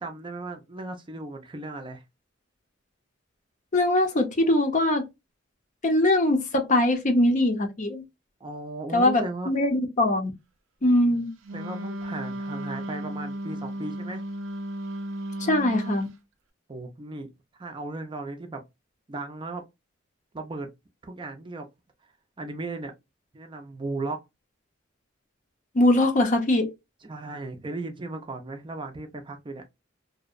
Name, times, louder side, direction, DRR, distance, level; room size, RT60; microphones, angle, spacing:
voice 1, 0.0-2.0 8.4-9.5 10.8-10.9 11.5-14.2 16.7-17.3 17.6-18.6 19.1-19.6 20.3-20.7 21.0-21.7 22.4-22.9 23.3-24.2 27.0-29.6, right 2 dB, 25° right, 0.4 m, -36 dB
voice 2, 3.7-5.1 5.8-8.0 8.9-10.3 10.8-11.3 15.4-16.1 25.7-26.7, left 1 dB, 40° left, 0.6 m, -22 dB
Wind instrument woodwind instrument, 11.4-16.2, right 1 dB, 85° right, 0.4 m, -34 dB
2.6 x 2.0 x 2.4 m
head